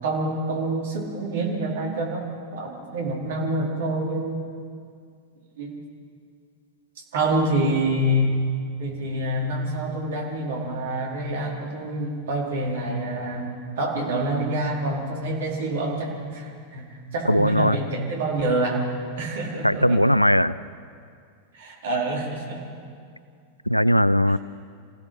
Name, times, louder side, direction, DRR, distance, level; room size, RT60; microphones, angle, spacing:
voice 1, 0.0-4.4 5.6-5.8 7.0-8.4 8.8-13.5 13.8-20.0 21.5-22.6, right 1 dB, 60° right, -1 dB, 4.3 m, -27 dB
voice 2, 17.3-17.8 19.6-20.5 23.7-24.4, equal, 90° left, 18 dB, 0.4 m, -19 dB
27.5 x 16.5 x 6.0 m, 2.2 s
figure-of-eight pair, 90°, 0 cm